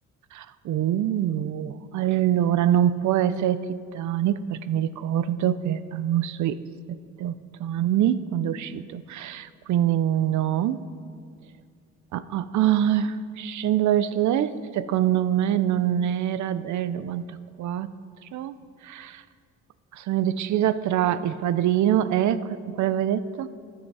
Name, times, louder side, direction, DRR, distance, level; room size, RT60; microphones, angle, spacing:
voice 1, 0.3-6.6 6.9-10.8 12.1-17.3 17.6-17.9 18.3-18.6 18.8-19.2 20.0-23.5, right 11 dB, 70° right, 14 dB, 0.6 m, -24 dB
15.0 x 9.2 x 4.8 m, 2.2 s
cardioid pair, 90°, 30 cm